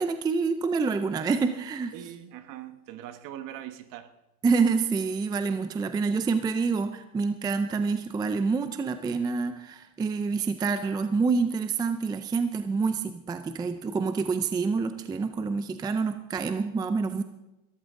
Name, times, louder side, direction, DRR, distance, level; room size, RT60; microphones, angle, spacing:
voice 1, 0.0-1.9 4.4-17.2, right 4 dB, 10° right, 9 dB, 0.5 m, -27 dB
voice 2, 1.9-4.1, right 11 dB, 45° right, 10 dB, 1.3 m, -41 dB
19.5 x 13.5 x 3.7 m, 0.93 s
supercardioid pair, 130°, 43 cm